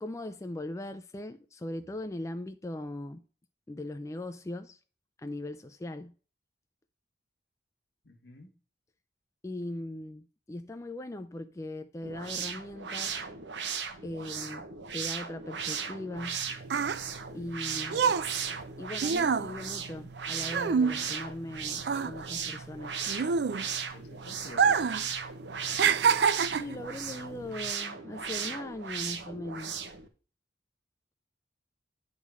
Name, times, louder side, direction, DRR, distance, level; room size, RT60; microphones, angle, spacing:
voice 1, 0.0-3.2 3.7-4.8 5.2-6.1 9.4-13.1 14.0-14.7 14.9-16.4 17.3-18.2 18.8-22.9 26.5-29.8, left 1 dB, 15° left, 0.3 m, -39 dB
voice 2, 8.0-8.5 23.9-25.1, left 1 dB, 70° left, 1.4 m, -49 dB
sound 1, 12.0-30.1, right 6 dB, 80° right, 1.0 m, -37 dB
sound 2, 16.2-21.5 21.8-24.0 24.5-25.1 25.3-26.8 27.5-27.7, right 6 dB, 65° right, 0.4 m, -27 dB
9.5 x 3.7 x 6.0 m
head